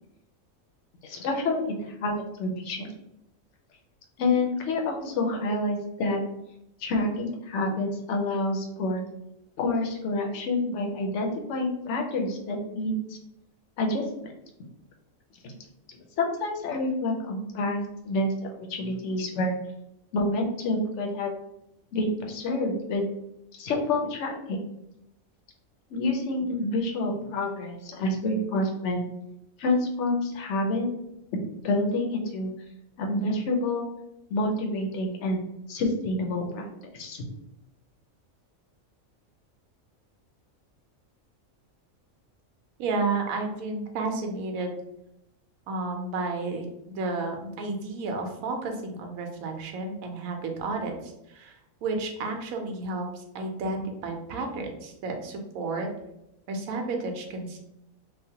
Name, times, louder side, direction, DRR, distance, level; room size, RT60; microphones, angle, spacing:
voice 1, 1.0-2.9 4.2-6.2 6.8-9.0 9.6-13.0 13.8-14.3 15.4-15.5 15.9-18.3 18.6-19.5 20.1-21.3 21.9-23.0 23.6-24.6 25.9-29.0 29.6-30.9 31.3-32.5 33.0-33.9 34.3-35.4 35.7-36.7 36.9-37.2, left 2 dB, 65° left, 1 dB, 0.8 m, -28 dB
voice 2, 42.8-44.8 45.7-51.5 51.8-55.9 56.5-57.6, right 3 dB, 85° right, 3 dB, 1.0 m, -32 dB
3.1 x 2.1 x 2.7 m, 0.84 s
omnidirectional pair, 1.4 m